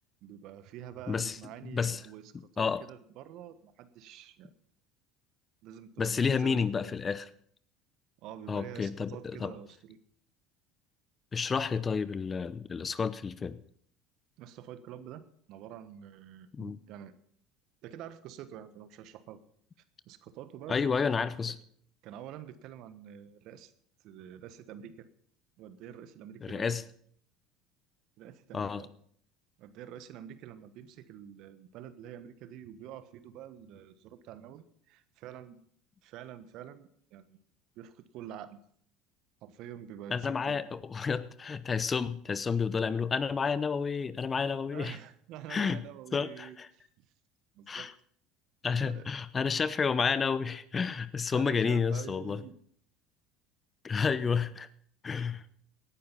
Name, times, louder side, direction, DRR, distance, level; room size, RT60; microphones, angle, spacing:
voice 1, 0.2-4.5 5.6-6.9 8.2-10.0 14.4-17.1 17.8-19.4 20.0-21.0 21.5-21.6 22.0-23.7 24.0-25.1 25.6-26.8 28.2-28.9 29.6-35.6 36.0-37.4 37.7-38.6 39.4-40.6 44.7-47.0 47.5-47.9 48.8-49.1 51.3-52.5, right 10 dB, 60° right, 13 dB, 1.3 m, -47 dB
voice 2, 1.1-1.4 1.6-2.0 2.6-2.8 6.0-7.3 8.5-9.5 11.3-13.6 16.5-16.8 20.7-21.5 26.4-26.8 28.5-28.8 40.1-45.0 45.5-45.8 46.1-46.7 47.7-47.9 48.6-52.4 53.8-54.7 55.0-55.4, left 5 dB, 30° left, 16 dB, 0.9 m, -30 dB
17.5 x 10.0 x 5.7 m, 0.64 s
hypercardioid pair, 70°, 0 cm